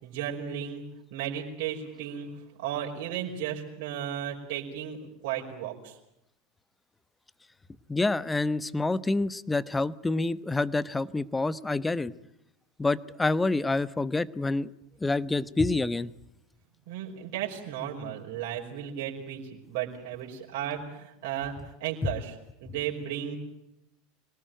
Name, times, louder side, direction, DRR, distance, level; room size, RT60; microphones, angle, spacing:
voice 1, 0.0-6.0 16.9-23.4, right 9 dB, 65° right, -1 dB, 5.2 m, -35 dB
voice 2, 7.9-12.1 12.8-14.7 15.0-16.1, left 2 dB, 10° left, 17 dB, 1.1 m, -27 dB
26.0 x 18.5 x 9.2 m, 0.83 s
hypercardioid pair, 95°, 0 cm